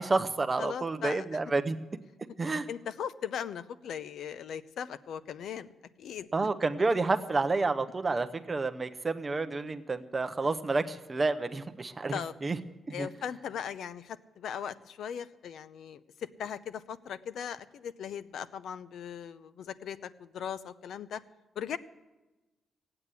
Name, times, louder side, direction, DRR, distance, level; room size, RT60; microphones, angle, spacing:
voice 1, 0.0-1.8 2.4-2.7 6.3-12.6 12.9-13.1, right 3 dB, 20° right, 10 dB, 0.7 m, -30 dB
voice 2, 0.6-1.2 2.5-5.7 6.0-6.3 12.1-12.3 12.9-21.2 21.6-21.8, left 8 dB, 70° left, 14 dB, 0.6 m, -39 dB
16.0 x 8.8 x 8.2 m, 1.1 s
wide cardioid pair, 160°, 0 cm